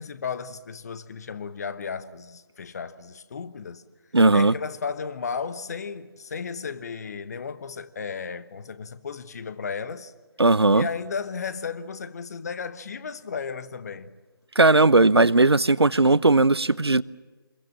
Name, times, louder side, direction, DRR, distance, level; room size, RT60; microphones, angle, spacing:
voice 1, 0.0-3.8 4.3-10.1 10.7-14.1, left 5 dB, 40° left, 1.2 m, -34 dB
voice 2, 4.1-4.5 10.4-10.9 14.6-17.0, right 2 dB, 85° right, 0.8 m, -17 dB
25.5 x 22.0 x 7.3 m
figure-of-eight pair, 150°, 13 cm